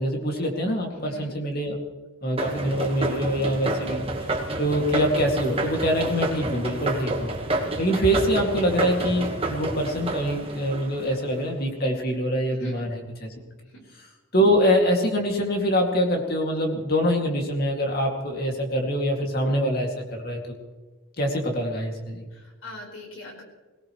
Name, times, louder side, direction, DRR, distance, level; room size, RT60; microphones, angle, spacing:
voice 1, 0.0-1.8 2.2-4.0 4.6-7.3 7.8-12.9 13.2-13.3 14.3-20.4 21.2-22.3, equal, 45° left, 1 dB, 2.3 m, -24 dB
voice 2, 1.0-1.3 12.5-12.8 13.7-13.8 22.3-23.4, left 1 dB, 70° left, -1 dB, 4.6 m, -41 dB
sound 1, 2.4-11.5, right 2 dB, 25° right, 1.4 m, -29 dB
23.0 x 18.0 x 3.2 m, 1.3 s
head